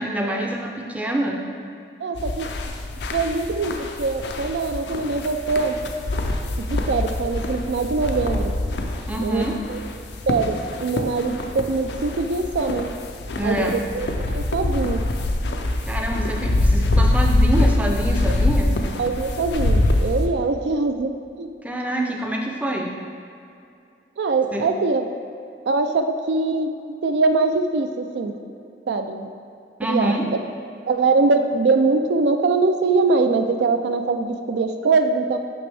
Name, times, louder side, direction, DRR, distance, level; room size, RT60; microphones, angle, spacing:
voice 1, 0.0-1.5 9.1-9.6 13.4-13.8 15.9-18.8 21.6-22.9 24.5-24.7 29.8-30.2, right 1 dB, 10° right, 1 dB, 0.4 m, -25 dB
voice 2, 2.0-2.5 3.1-5.8 6.6-8.5 9.2-9.8 10.3-12.9 13.4-15.1 19.0-21.5 24.2-25.1 25.7-26.7 27.0-28.3 28.9-29.3 29.8-30.4 30.9-35.4, right 3 dB, 80° right, 6 dB, 0.4 m, -22 dB
sound 1, 2.1-20.3, left 2 dB, 80° left, 0.5 m, -24 dB
6.0 x 5.9 x 3.4 m, 2.5 s
head